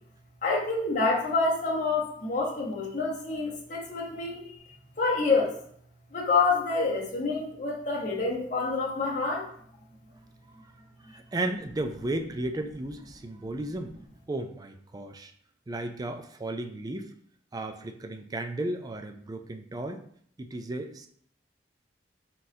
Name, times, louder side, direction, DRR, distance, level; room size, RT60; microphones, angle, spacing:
voice 1, 0.4-4.5 5.0-5.6 6.1-9.4, left 3 dB, 45° left, -3 dB, 1.0 m, -27 dB
voice 2, 11.0-14.0 14.3-15.3 15.7-17.1 17.5-20.0 20.4-21.1, right 2 dB, 20° right, 7 dB, 0.4 m, -34 dB
4.0 x 3.7 x 2.7 m, 0.62 s
head